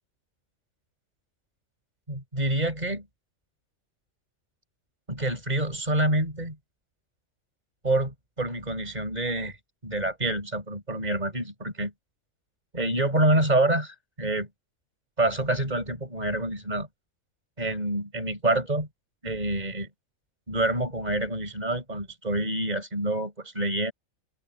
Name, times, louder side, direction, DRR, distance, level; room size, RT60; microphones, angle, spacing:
voice 1, 2.1-3.1 5.1-6.6 7.8-9.6 9.8-11.9 12.7-14.5 15.2-16.9 17.6-18.9 19.2-19.9 20.5-23.9, right 1 dB, 30° right, 6.2 m, -27 dB
open air
omnidirectional pair, 1.4 m